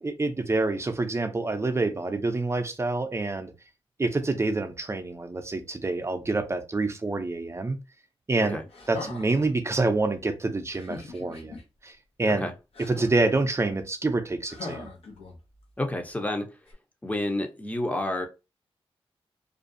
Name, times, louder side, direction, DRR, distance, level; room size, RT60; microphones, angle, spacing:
voice 1, 0.0-3.5 4.0-7.8 8.3-8.6 8.9-11.6 11.8-11.9 12.2-12.5 12.8-14.9, right 3 dB, 25° right, 0.5 m, -27 dB
sound 1, 8.7-9.5 10.7-11.6 12.7-13.4 14.5-15.6 16.7-16.8, left 3 dB, 70° left, 0.8 m, -41 dB
voice 2, 15.8-16.5 17.0-18.3, left 1 dB, 15° left, 0.7 m, -29 dB
2.5 x 2.3 x 2.6 m
cardioid pair, 60°, 10 cm